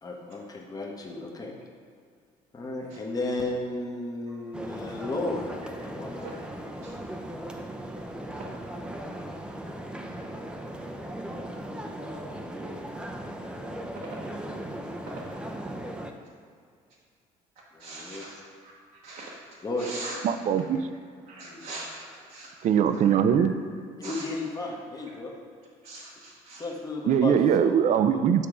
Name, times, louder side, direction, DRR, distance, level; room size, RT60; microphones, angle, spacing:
voice 1, 0.0-1.6 2.5-5.6 5.8-6.3 17.7-18.3 19.6-19.9 21.4-21.9 24.0-25.3 26.6-28.2, left 2 dB, 25° left, 0 dB, 1.0 m, -34 dB
sound 1, 4.5-16.1, right 1 dB, 5° right, 0.6 m, -38 dB
voice 2, 17.8-18.3 19.0-19.4 19.8-20.2 21.3-22.5 22.9-23.2 24.0-24.2 25.8-26.6, right 2 dB, 75° right, -5 dB, 1.0 m, -41 dB
voice 3, 20.2-20.8 22.6-23.5 27.1-28.5, right 8 dB, 55° right, 10 dB, 0.4 m, -21 dB
7.0 x 3.6 x 4.9 m, 2.2 s
cardioid pair, 90°, 15 cm